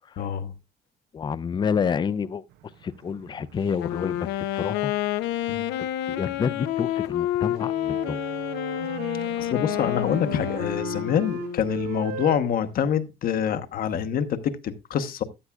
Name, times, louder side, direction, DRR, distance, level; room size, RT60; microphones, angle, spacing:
voice 1, 0.2-0.5 5.5-5.7 9.4-15.2, left 8 dB, 60° left, 1.0 m, -26 dB
voice 2, 1.1-2.4 2.8-4.9 5.8-8.2, left 6 dB, 25° left, 0.5 m, -29 dB
sound 1, 2.5-12.4, right 10 dB, 75° right, 0.6 m, -38 dB
Wind instrument woodwind instrument, 3.7-11.8, left 13 dB, 90° left, 0.7 m, -29 dB
14.0 x 9.6 x 2.3 m
cardioid pair, 110°, 17 cm